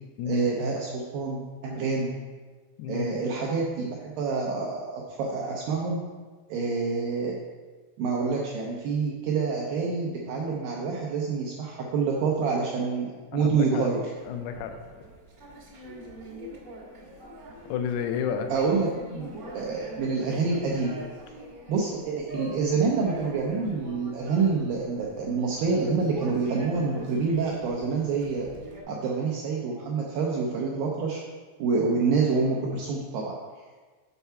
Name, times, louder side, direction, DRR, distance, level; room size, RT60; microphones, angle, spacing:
voice 1, 0.3-2.1 2.9-6.0 6.5-7.4 8.0-14.0 18.5-21.0 21.7-28.5 28.9-31.2 31.6-33.4, right 4 dB, 90° right, -2 dB, 2.0 m, -27 dB
voice 2, 2.8-3.1 13.4-13.9 14.3-14.7 17.7-18.5, left 7 dB, 85° left, 6 dB, 2.3 m, -30 dB
sound 1, 14.1-28.8, equal, 70° right, 1.0 m, -43 dB
7.0 x 4.6 x 5.6 m, 1.4 s
omnidirectional pair, 5.0 m